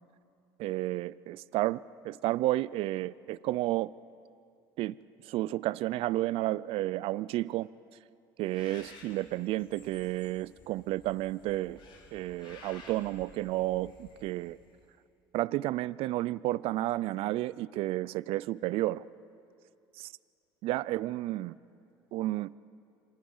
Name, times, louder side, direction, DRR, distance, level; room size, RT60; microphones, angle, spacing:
voice 1, 0.6-3.9 4.8-5.0 5.2-7.7 8.4-11.8 12.1-14.6 15.3-19.0 19.9-20.1 20.6-21.5 22.1-22.5, right 16 dB, 65° right, 20 dB, 0.5 m, -31 dB
Bird, 8.4-14.8, left 3 dB, 50° left, 4.7 m, -54 dB
28.0 x 25.0 x 5.6 m, 2.5 s
supercardioid pair, 80°, 11 cm